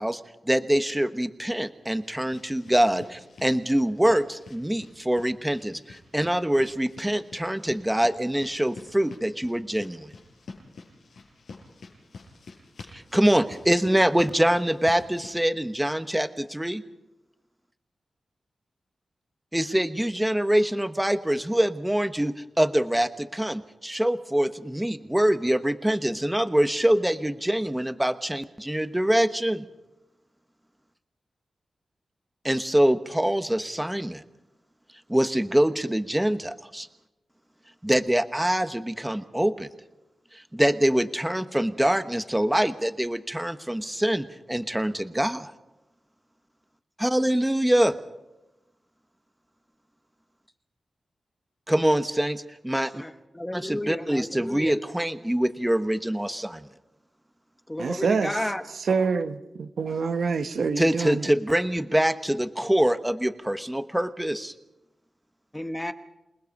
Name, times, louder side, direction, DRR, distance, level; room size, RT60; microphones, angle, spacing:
voice 1, 0.0-10.1 12.9-16.8 19.5-29.7 32.4-34.2 35.1-36.9 37.8-39.7 40.3-45.5 47.0-47.9 51.7-53.0 53.5-56.7 60.8-64.5, right 1 dB, 10° right, 1.1 m, -24 dB
sound 1, 1.3-15.3, left 4 dB, 85° left, 6.0 m, -48 dB
voice 2, 52.9-54.7 57.7-58.6 65.5-65.9, left 1 dB, 10° left, 1.2 m, -32 dB
voice 3, 57.8-61.3, right 5 dB, 75° right, 1.1 m, -27 dB
28.0 x 20.0 x 5.4 m
wide cardioid pair, 90°, 0 cm